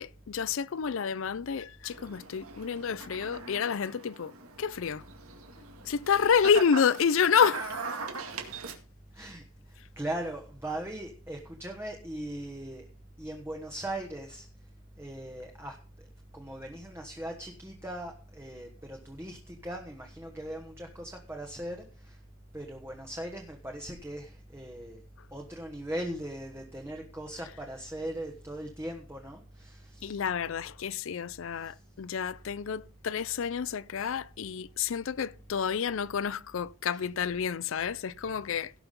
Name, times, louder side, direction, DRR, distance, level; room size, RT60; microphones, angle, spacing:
voice 1, 0.0-4.3 4.6-5.0 5.8-7.9 30.0-38.7, left 6 dB, 65° left, 0.4 m, -29 dB
sound 1, 1.9-8.7, right 4 dB, 80° right, 2.1 m, -41 dB
voice 2, 9.1-12.8 13.2-14.5 15.0-16.1 16.3-22.2 22.5-25.0 25.3-30.2 31.6-31.8, right 1 dB, 10° right, 1.2 m, -39 dB
17.5 x 5.9 x 5.3 m
head